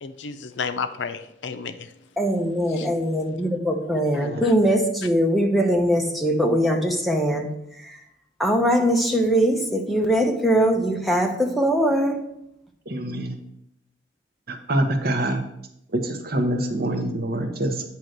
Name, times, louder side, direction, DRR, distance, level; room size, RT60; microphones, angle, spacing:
voice 1, 0.0-1.9 2.8-2.9 4.1-4.5, left 5 dB, 75° left, 10 dB, 0.5 m, -32 dB
voice 2, 2.2-7.5 7.8-8.0 8.4-12.2, equal, ahead, 1 dB, 0.9 m, -21 dB
voice 3, 12.9-13.3 14.5-15.4 15.9-17.8, right 1 dB, 55° right, 5 dB, 1.0 m, -25 dB
9.0 x 3.0 x 6.5 m, 0.78 s
head